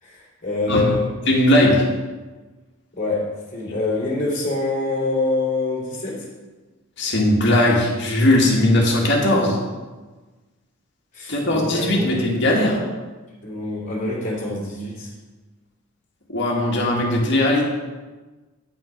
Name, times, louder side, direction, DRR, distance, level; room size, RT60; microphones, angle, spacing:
voice 1, 0.0-1.1 2.9-6.3 11.1-12.4 13.4-15.1, left 2 dB, 40° left, -4 dB, 3.0 m, -25 dB
voice 2, 1.3-1.8 7.0-9.6 11.3-12.8 16.3-17.6, left 1 dB, 60° left, -1 dB, 1.9 m, -18 dB
9.5 x 6.0 x 5.2 m, 1.3 s
head